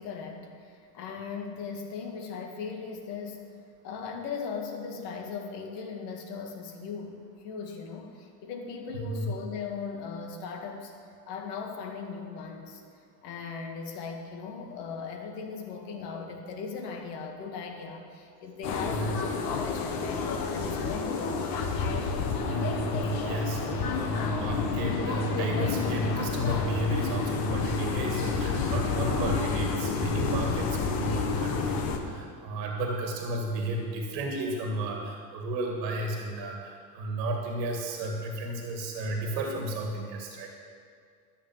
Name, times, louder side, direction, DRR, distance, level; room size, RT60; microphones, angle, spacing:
voice 1, 0.0-3.4 3.8-10.9 11.3-12.8 13.2-21.5, left 5 dB, 70° left, 2 dB, 2.2 m, -38 dB
sound 1, 18.6-32.0, left 4 dB, 45° left, 1.5 m, -30 dB
voice 2, 22.5-40.5, right 1 dB, 80° right, 1 dB, 2.1 m, -32 dB
12.5 x 7.1 x 7.5 m, 2.2 s
supercardioid pair, 110°, 50 cm